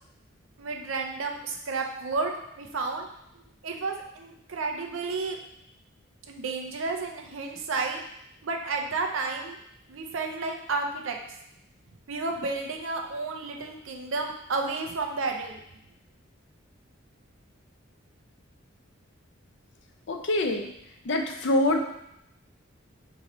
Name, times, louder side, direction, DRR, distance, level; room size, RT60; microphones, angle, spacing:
voice 1, 0.6-3.1 3.6-5.4 6.3-8.0 8.4-9.6 9.9-11.2 12.1-15.6, right 3 dB, 80° right, 2 dB, 0.6 m, -31 dB
voice 2, 20.1-20.7 21.1-21.8, left 1 dB, 60° left, 4 dB, 0.5 m, -25 dB
5.1 x 2.8 x 3.0 m, 0.80 s
head